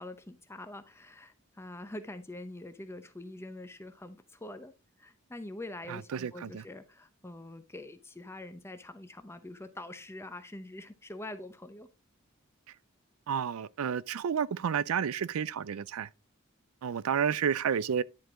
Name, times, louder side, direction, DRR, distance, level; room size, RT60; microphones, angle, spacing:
voice 1, 0.0-4.7 5.0-11.9, left 1 dB, 10° left, 0.7 m, -44 dB
voice 2, 5.9-6.6 13.3-16.1 16.8-18.0, right 7 dB, 80° right, 0.4 m, -31 dB
10.5 x 4.7 x 3.7 m
head